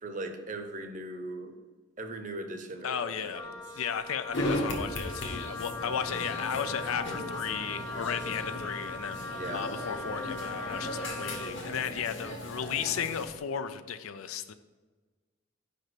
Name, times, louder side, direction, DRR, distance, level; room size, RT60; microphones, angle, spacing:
voice 1, 0.0-1.5 2.0-3.6 9.3-9.6, right 2 dB, 40° right, 6 dB, 0.8 m, -39 dB
voice 2, 2.8-3.4 3.7-14.5, left 8 dB, 85° left, 11 dB, 0.5 m, -35 dB
Wind instrument woodwind instrument, 3.3-11.6, left 3 dB, 20° left, 0.5 m, -40 dB
sound 1, 4.3-13.3, left 1 dB, 60° left, 1.3 m, -37 dB
sound 2, 5.6-13.4, equal, 75° right, 1.2 m, -49 dB
5.2 x 5.1 x 6.1 m, 1.3 s
head